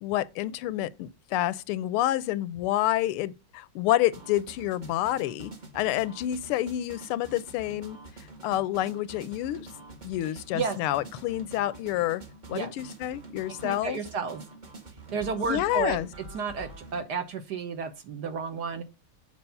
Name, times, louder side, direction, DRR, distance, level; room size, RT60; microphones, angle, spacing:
voice 1, 0.0-8.0 8.4-9.7 10.0-12.2 12.5-14.0 15.4-16.1, left 14 dB, 85° left, 1.5 m, -28 dB
sound 1, 4.1-17.0, right 2 dB, 30° right, 0.9 m, -46 dB
voice 2, 13.6-14.4 15.1-16.0 16.3-18.8, right 5 dB, 60° right, 1.3 m, -32 dB
7.0 x 4.7 x 5.3 m
omnidirectional pair, 2.4 m